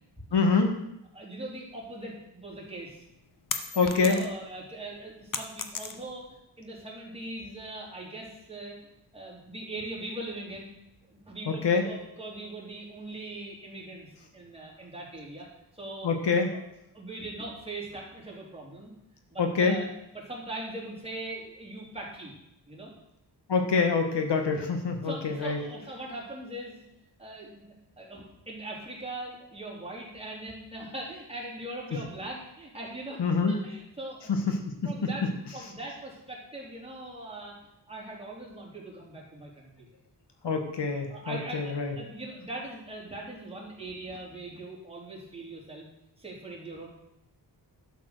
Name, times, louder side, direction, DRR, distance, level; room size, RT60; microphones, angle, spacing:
voice 1, 0.3-0.7 3.8-4.2 11.5-11.8 16.0-16.5 19.4-19.8 23.5-25.6 33.2-33.6 34.3-34.5 34.8-34.9 40.4-41.9, left 4 dB, 70° left, 4 dB, 1.7 m, -25 dB
voice 2, 1.1-3.0 3.7-8.8 9.1-10.7 11.1-15.5 15.7-16.1 16.5-16.6 16.9-18.9 19.3-19.9 20.1-22.3 22.7-22.9 25.0-26.8 27.2-34.3 34.8-37.6 37.9-39.9 41.1-45.9 46.2-46.9, right 2 dB, 15° right, -3 dB, 3.6 m, -41 dB
sound 1, 2.7-4.5 4.9-6.3, left 5 dB, 45° left, 1.1 m, -36 dB
11.5 x 7.3 x 6.7 m, 0.83 s
wide cardioid pair, 135°, 43 cm